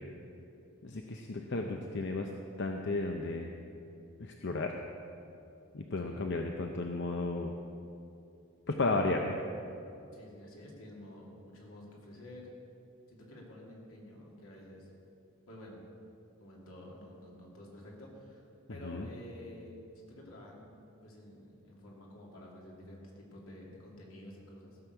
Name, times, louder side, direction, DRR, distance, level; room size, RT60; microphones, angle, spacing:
voice 1, 0.8-2.3 2.6-3.5 4.2-4.7 5.7-7.5 8.7-9.4 18.8-19.1, left 2 dB, 55° left, 3 dB, 0.6 m, -33 dB
voice 2, 10.1-12.5 13.1-14.9 15.5-15.8 16.4-18.4 18.7-19.8 20.1-20.6 21.0-24.8, left 1 dB, 80° left, -2 dB, 2.6 m, -50 dB
15.0 x 6.2 x 6.8 m, 2.6 s
head